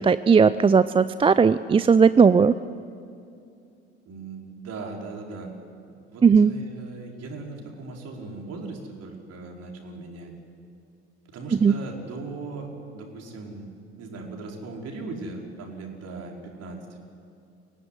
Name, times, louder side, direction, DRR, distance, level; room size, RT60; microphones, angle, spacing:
voice 1, 0.0-2.6 6.2-6.6 11.6-11.8, right 5 dB, 15° right, 15 dB, 0.5 m, -17 dB
voice 2, 4.0-5.5 5.9-10.3 11.3-13.7 14.0-17.0, right 3 dB, 50° right, 1 dB, 4.8 m, -38 dB
24.5 x 17.0 x 9.9 m, 2.5 s
figure-of-eight pair, 65°, 33 cm